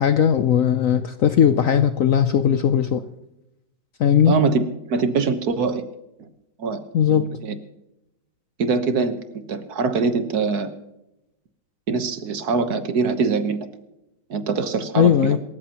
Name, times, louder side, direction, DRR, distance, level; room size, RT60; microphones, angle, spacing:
voice 1, 0.0-3.0 4.0-4.3 6.9-7.3 15.0-15.4, left 8 dB, 60° left, 10 dB, 0.9 m, -18 dB
voice 2, 4.3-4.6 4.9-5.8 6.2-6.3 6.6-6.8 7.1-7.5 8.6-9.2 9.5-10.7 11.9-13.6 14.3-15.4, right 4 dB, 60° right, 9 dB, 1.6 m, -23 dB
27.0 x 14.0 x 3.0 m, 0.90 s
omnidirectional pair, 1.9 m